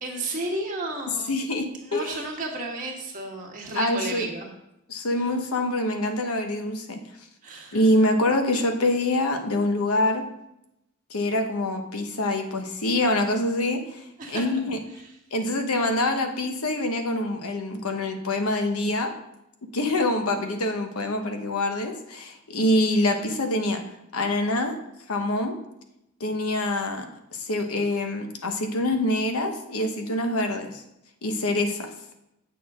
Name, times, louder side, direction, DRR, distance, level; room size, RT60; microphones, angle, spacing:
voice 1, 0.0-1.3 1.8-4.5 5.1-5.3 7.4-7.8 14.2-14.5 14.9-15.1, right 2 dB, 35° right, -1 dB, 1.6 m, -33 dB
voice 2, 1.3-2.2 3.7-4.3 4.9-7.0 7.7-10.2 11.1-14.8 15.3-19.1 19.7-23.8 24.1-24.8 25.1-25.6 26.2-27.1 27.3-30.8 31.2-31.9, left 1 dB, 85° left, 5 dB, 1.0 m, -25 dB
8.1 x 6.4 x 3.6 m, 0.84 s
head